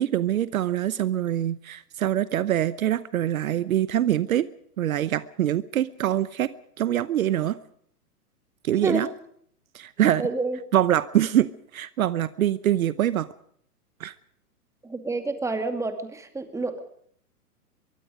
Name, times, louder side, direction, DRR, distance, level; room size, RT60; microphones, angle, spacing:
voice 1, 0.0-4.5 4.8-6.5 6.8-7.6 8.6-9.1 9.7-10.3 10.7-13.3 14.0-14.1, right 11 dB, 60° right, 16 dB, 1.0 m, -24 dB
voice 2, 10.2-10.6 14.8-16.8, right 3 dB, 5° right, 7 dB, 2.5 m, -29 dB
23.5 x 23.0 x 5.1 m, 0.65 s
hypercardioid pair, 120°, 46 cm